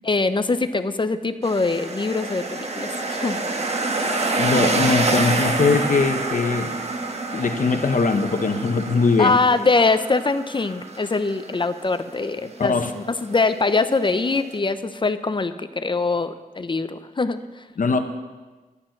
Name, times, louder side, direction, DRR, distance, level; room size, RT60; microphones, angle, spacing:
voice 1, 0.0-3.4 9.2-17.6, left 3 dB, 30° left, 11 dB, 0.7 m, -23 dB
sound 1, 1.4-14.6, right 3 dB, 45° right, 1.3 m, -27 dB
voice 2, 4.4-6.8 7.3-9.3 12.6-12.9 17.8-18.0, left 4 dB, 60° left, 6 dB, 1.1 m, -21 dB
11.5 x 9.7 x 5.9 m, 1.3 s
wide cardioid pair, 80°, 15 cm